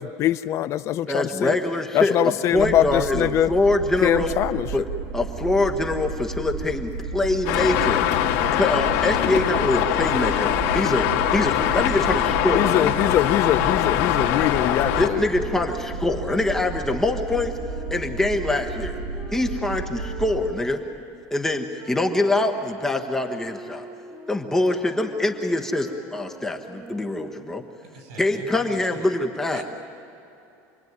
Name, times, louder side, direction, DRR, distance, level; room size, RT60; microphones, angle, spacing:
voice 1, 0.0-1.5 1.9-3.5 4.0-4.7 12.5-15.2, left 12 dB, 40° left, 13 dB, 0.6 m, -23 dB
voice 2, 1.1-4.4 4.7-4.9 5.1-12.9 15.0-17.5 17.9-19.0 19.3-20.8 21.3-23.9 24.3-27.6 28.2-29.6, left 2 dB, 5° left, 3 dB, 1.3 m, -24 dB
sound 1, 2.5-20.5, right 4 dB, 50° right, 6.1 m, -33 dB
Traffic noise roadway noise, 7.5-15.1, left 12 dB, 70° left, 2.0 m, -22 dB
Wind instrument woodwind instrument, 15.1-21.0 21.8-27.5, right 3 dB, 20° right, 3.2 m, -42 dB
voice 3, 27.8-29.1 29.5-29.6, right 4 dB, 75° right, 5 dB, 7.4 m, -42 dB
28.0 x 20.5 x 9.6 m, 2.8 s
cardioid pair, 155°, 7 cm